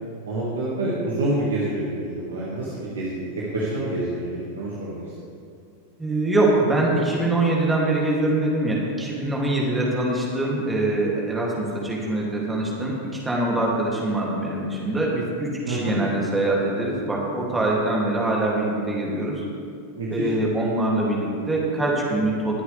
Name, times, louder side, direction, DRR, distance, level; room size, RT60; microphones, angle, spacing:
voice 1, 0.2-3.2 3.5-5.0 15.7-15.9 20.0-20.3, right 2 dB, 65° right, -6 dB, 2.0 m, -27 dB
voice 2, 6.0-19.4 20.1-22.6, right 2 dB, 10° right, -4 dB, 2.8 m, -23 dB
21.5 x 7.9 x 3.5 m, 2.3 s
figure-of-eight pair, 90°, 0 cm